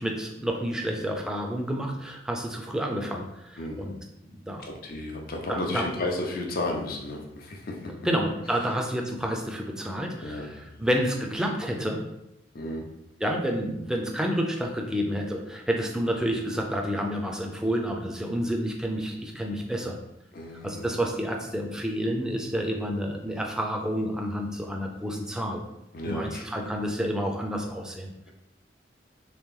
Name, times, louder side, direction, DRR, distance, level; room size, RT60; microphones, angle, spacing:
voice 1, 0.0-3.9 4.3-4.7 5.5-5.8 8.0-12.0 13.2-20.0 20.6-25.6 26.0-28.3, equal, 5° right, 1 dB, 0.4 m, -29 dB
voice 2, 3.6-3.9 4.6-7.9 10.2-10.9 12.5-12.9 20.3-20.9 25.9-26.4, left 1 dB, 55° left, 1 dB, 0.6 m, -33 dB
3.3 x 3.0 x 3.7 m, 0.85 s
head